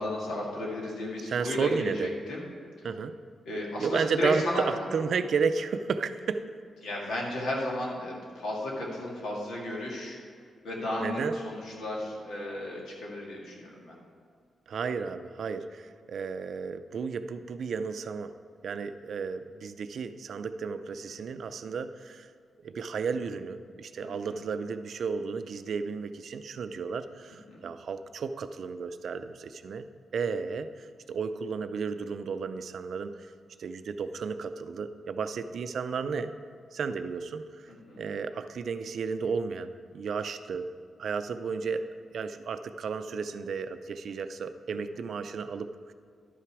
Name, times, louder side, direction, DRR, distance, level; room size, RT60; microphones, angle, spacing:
voice 1, 0.0-2.4 3.5-4.8 6.8-10.2 10.6-13.9 24.0-24.4 27.5-27.6 37.7-38.0, left 1 dB, 85° left, -3 dB, 2.1 m, -34 dB
voice 2, 1.3-2.2 2.8-3.2 3.8-6.5 11.0-11.4 14.7-18.4 18.6-22.3 22.6-33.3 33.6-36.3 36.7-37.7 38.0-40.7 41.0-41.9 42.1-45.9, right 5 dB, 65° right, 10 dB, 0.4 m, -33 dB
11.5 x 5.8 x 4.8 m, 2.1 s
cardioid pair, 105°, 0 cm